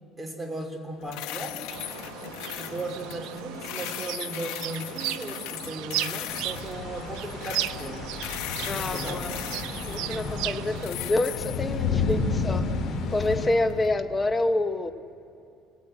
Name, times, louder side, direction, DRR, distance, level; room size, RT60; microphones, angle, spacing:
voice 1, 0.2-1.7 2.6-8.1 8.7-9.2, right 1 dB, 5° right, 3.4 m, -37 dB
sound 1, 1.0-13.9, left 13 dB, 85° left, 1.0 m, -39 dB
sound 2, 1.7-10.9, right 16 dB, 75° right, 0.5 m, -36 dB
sound 3, 6.3-13.5, left 4 dB, 50° left, 3.9 m, -31 dB
voice 2, 8.6-9.3 9.8-12.7 13.1-14.9, left 2 dB, 15° left, 1.1 m, -27 dB
29.5 x 18.5 x 9.0 m
cardioid pair, 140°, 0 cm